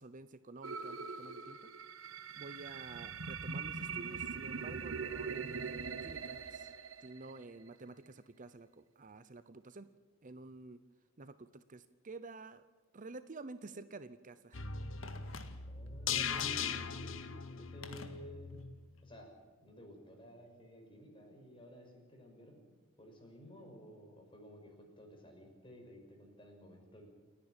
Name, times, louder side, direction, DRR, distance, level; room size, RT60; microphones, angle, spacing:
voice 1, 0.0-1.6 2.4-6.7 7.0-9.9 10.2-10.8 11.2-12.7 12.9-14.7, right 3 dB, 40° right, 13 dB, 0.7 m, -50 dB
sound 1, 0.6-7.7, right 5 dB, 85° right, 1.1 m, -42 dB
sound 2, 14.5-18.7 19.1-19.2, left 7 dB, 70° left, 1.1 m, -39 dB
Telephone, 15.0-15.9 16.3-16.7 17.8-18.7 19.0-19.1, left 4 dB, 85° left, 1.9 m, -51 dB
voice 2, 15.7-18.7 19.0-19.3 19.6-22.7 23.0-27.1, equal, 25° left, 2 dB, 5.7 m, -53 dB
29.0 x 9.9 x 9.0 m, 1.4 s
head